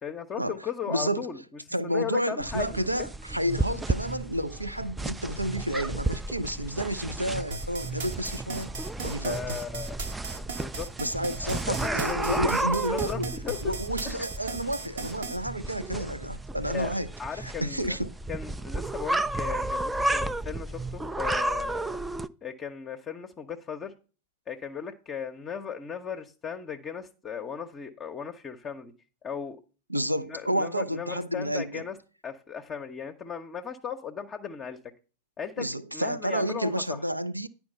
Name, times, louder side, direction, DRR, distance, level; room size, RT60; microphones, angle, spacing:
voice 1, 0.0-1.4 1.8-2.8 9.2-10.0 10.4-10.9 11.2-12.5 12.9-13.7 14.0-14.2 16.7-16.9 17.2-18.0 18.3-22.0 22.4-23.9 24.5-28.9 29.2-29.6 29.9-30.0 30.3-32.0 32.2-34.8 35.4-35.7 35.9-37.0, left 7 dB, 25° left, 0.6 m, -36 dB
voice 2, 0.9-1.3 1.7-8.7 9.0-9.4 11.0-13.3 13.6-18.1 29.9-31.8 35.6-37.5, right 1 dB, 85° right, 0.5 m, -30 dB
sound 1, 2.4-22.3, right 2 dB, 10° right, 0.3 m, -33 dB
sound 2, 7.5-15.4, right 4 dB, 65° right, 0.8 m, -37 dB
10.5 x 4.6 x 5.3 m
figure-of-eight pair, 90°, 0 cm